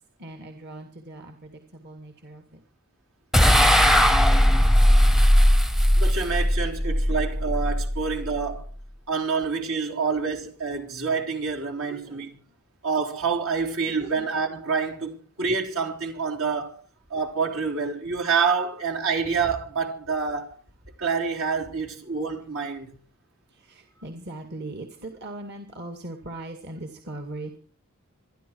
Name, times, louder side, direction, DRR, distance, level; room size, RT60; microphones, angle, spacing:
voice 1, 0.2-2.6 11.7-12.6 13.9-14.3 23.5-27.6, right 2 dB, 50° right, 2.1 m, -40 dB
sound 1, 3.3-8.7, equal, ahead, 0.7 m, -19 dB
voice 2, 6.0-8.7 9.1-12.3 12.8-16.8 17.1-20.6 21.0-23.0, right 5 dB, 75° right, 4.1 m, -27 dB
26.5 x 11.0 x 4.7 m
head